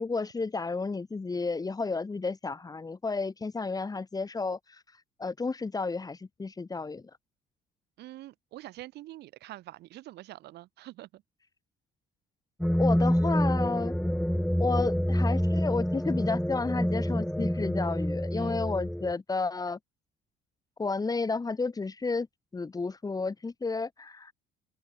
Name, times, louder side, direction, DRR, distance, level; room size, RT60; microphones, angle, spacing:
voice 1, 0.0-4.8 5.2-7.0 12.8-13.9 14.6-19.8 20.8-22.3 22.5-24.3, left 4 dB, 20° left, 6.8 m, -32 dB
voice 2, 8.0-11.2 18.3-18.7, right 16 dB, 80° right, 6.4 m, -45 dB
sound 1, 12.6-19.1, equal, ahead, 1.4 m, -27 dB
open air
cardioid pair, 110°, 17 cm